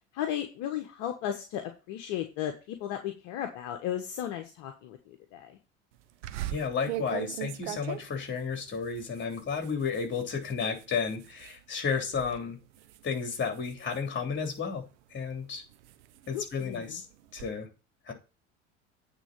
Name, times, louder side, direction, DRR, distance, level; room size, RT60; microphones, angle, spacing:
voice 1, 0.1-5.6 16.3-17.0, left 11 dB, 60° left, 5 dB, 1.2 m, -35 dB
sound 1, 6.2-11.6 12.0-12.4 12.7-14.8 15.3-17.5, right 15 dB, 70° right, 0.9 m, -41 dB
voice 2, 6.5-12.6 13.0-14.8 15.1-15.6 16.3-17.0 17.3-17.7 18.1-18.2, left 5 dB, 30° left, 3 dB, 3.4 m, -32 dB
9.0 x 4.0 x 7.2 m, 0.31 s
figure-of-eight pair, 70°, 36 cm